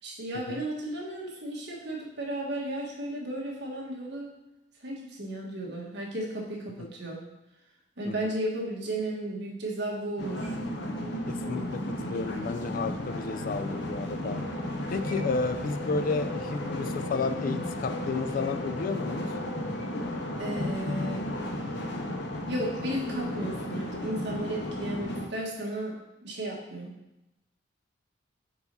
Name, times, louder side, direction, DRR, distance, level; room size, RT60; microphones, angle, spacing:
voice 1, 0.0-4.3 4.8-7.2 8.0-10.5 20.4-21.2 22.5-26.9, right 1 dB, 60° right, -2 dB, 1.4 m, -34 dB
sound 1, 10.2-25.3, left 1 dB, 60° left, 0.7 m, -34 dB
voice 2, 11.3-14.4 14.9-19.3, left 4 dB, 45° left, 9 dB, 0.3 m, -32 dB
4.7 x 4.1 x 5.3 m, 0.92 s
head